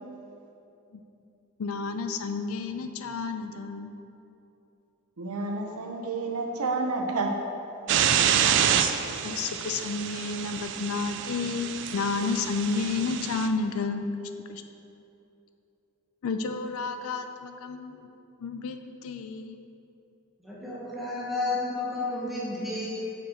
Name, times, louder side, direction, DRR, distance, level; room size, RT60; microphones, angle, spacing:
voice 1, 1.6-3.9 9.2-14.6 16.2-18.1 18.4-19.6, left 4 dB, 70° left, 8 dB, 0.4 m, -31 dB
voice 2, 5.2-7.3 7.9-8.0, right 3 dB, 85° right, 2 dB, 0.8 m, -30 dB
sound 1, 7.9-13.5, right 9 dB, 55° right, 0.3 m, -27 dB
voice 3, 20.4-22.9, left 2 dB, ahead, -7 dB, 1.0 m, -31 dB
5.9 x 5.2 x 4.4 m, 2.8 s
head